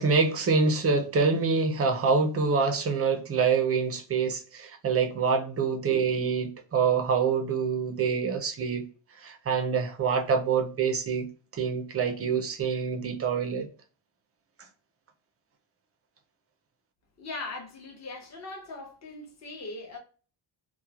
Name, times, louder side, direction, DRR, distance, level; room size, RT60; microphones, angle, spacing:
voice 1, 0.0-8.9 9.2-13.7, right 5 dB, 30° right, 0.4 m, -26 dB
voice 2, 17.2-20.0, left 2 dB, 35° left, 0.8 m, -40 dB
2.9 x 2.1 x 2.3 m
wide cardioid pair, 160°, 49 cm